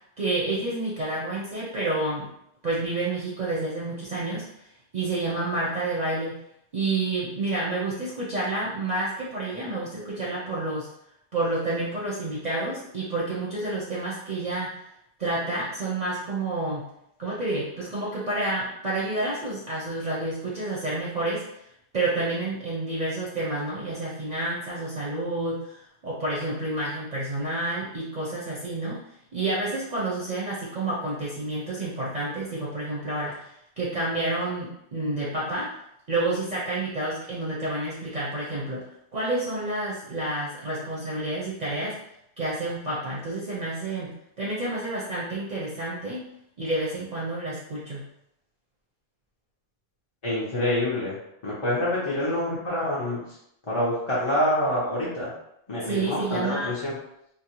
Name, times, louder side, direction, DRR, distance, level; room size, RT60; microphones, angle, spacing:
voice 1, 0.2-2.3 2.6-4.4 4.9-6.4 6.7-10.9 11.3-14.9 15.2-16.9 17.2-21.4 21.9-29.0 29.3-35.7 36.1-38.8 39.1-42.0 42.4-46.3 46.6-48.1 55.8-56.7, right 2 dB, 50° right, -6 dB, 0.6 m, -29 dB
voice 2, 50.2-51.2 51.4-53.2 53.7-55.3 55.7-56.9, left 1 dB, 35° left, -7 dB, 0.6 m, -26 dB
2.6 x 2.1 x 2.9 m, 0.77 s
omnidirectional pair, 1.1 m